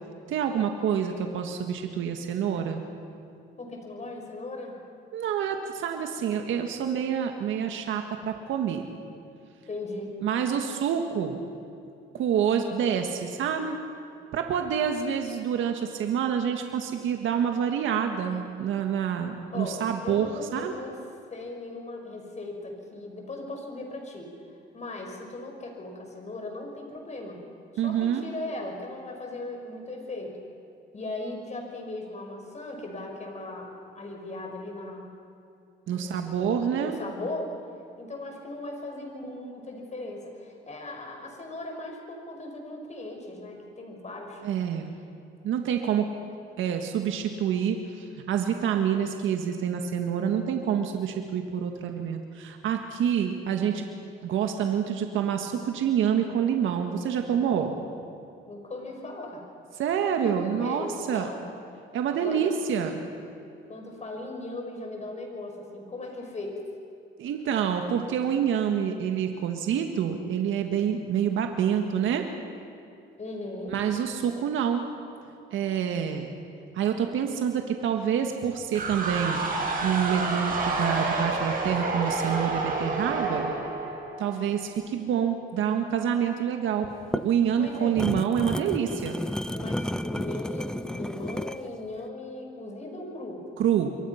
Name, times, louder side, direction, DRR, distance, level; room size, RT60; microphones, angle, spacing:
voice 1, 0.3-2.8 5.1-8.9 10.2-11.4 12.1-13.8 14.3-20.7 27.8-28.3 35.9-37.0 44.4-44.9 45.4-46.1 46.6-53.8 54.2-57.7 59.7-61.3 61.9-63.0 67.2-72.3 73.7-74.9 75.5-76.3 76.7-79.4 79.8-83.5 84.2-86.9 87.2-89.2 93.6-94.0, right 8 dB, 80° right, 4 dB, 1.7 m, -27 dB
voice 2, 3.6-4.8 9.7-10.1 19.5-20.9 21.3-24.3 24.7-27.4 27.8-30.4 30.9-35.1 35.9-37.5 38.0-44.4 57.4-57.6 58.5-59.4 60.4-61.5 62.2-62.6 63.7-66.6 73.2-73.8 87.5-87.9 89.5-93.4, left 2 dB, 35° left, 2 dB, 5.8 m, -38 dB
sound 1, 78.7-84.5, right 3 dB, 45° right, 6.1 m, -29 dB
sound 2, 86.9-91.7, left 1 dB, 5° left, 0.6 m, -32 dB
28.0 x 23.0 x 5.8 m, 2.5 s
cardioid pair, 90°, 20 cm